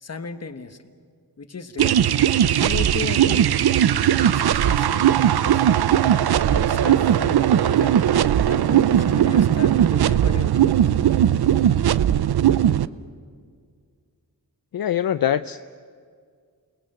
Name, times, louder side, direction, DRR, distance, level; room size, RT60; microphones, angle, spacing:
voice 1, 0.0-0.8 1.4-2.0 2.4-3.5 3.9-5.7 6.3-7.9 8.5-10.9, left 4 dB, 40° left, 9 dB, 1.3 m, -35 dB
sound 1, 1.8-12.9, right 10 dB, 80° right, 0.6 m, -18 dB
voice 2, 14.7-15.6, left 10 dB, 70° left, 12 dB, 0.5 m, -23 dB
28.5 x 19.0 x 7.8 m, 2.1 s
wide cardioid pair, 100°, 37 cm